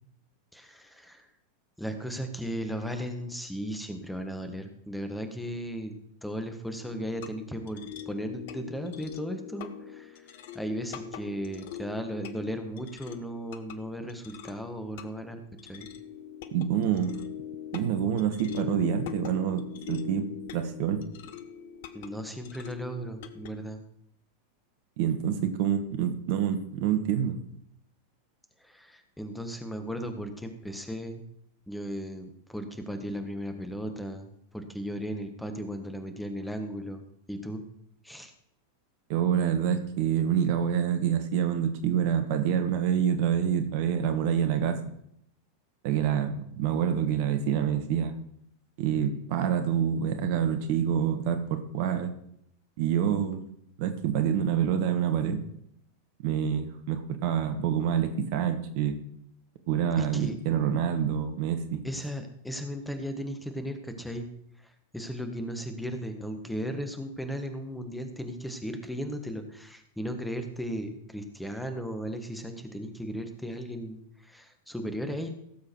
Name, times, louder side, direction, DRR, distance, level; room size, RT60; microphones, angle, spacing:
voice 1, 0.5-1.3 1.8-5.9 6.2-10.3 10.5-15.4 15.7-15.9 21.9-23.8 28.6-31.3 31.7-37.6 38.0-38.3 60.0-60.4 61.8-64.3 64.6-75.3, equal, 5° left, 6 dB, 1.5 m, -36 dB
sound 1, 6.8-23.5, left 9 dB, 55° left, 1.0 m, -42 dB
voice 2, 16.5-17.2 17.7-20.2 20.5-21.0 25.0-27.4 39.1-44.8 45.8-48.1 48.8-52.1 52.8-53.4 53.8-55.4 56.2-59.0 59.7-61.8, right 8 dB, 50° right, 7 dB, 1.4 m, -27 dB
17.0 x 7.5 x 4.6 m, 0.72 s
figure-of-eight pair, 90°, 0 cm